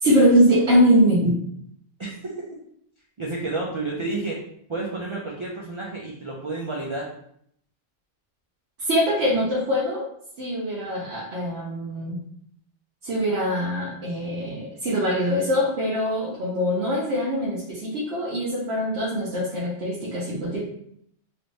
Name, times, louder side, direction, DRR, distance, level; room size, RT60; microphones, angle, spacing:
voice 1, 0.0-1.4 8.8-10.0 10.4-12.2 13.0-20.6, equal, 75° right, -7 dB, 1.1 m, -22 dB
voice 2, 2.0-2.5 3.2-4.4 4.7-7.1, right 2 dB, 40° right, -3 dB, 0.4 m, -30 dB
3.1 x 2.5 x 3.1 m, 0.68 s
omnidirectional pair, 1.1 m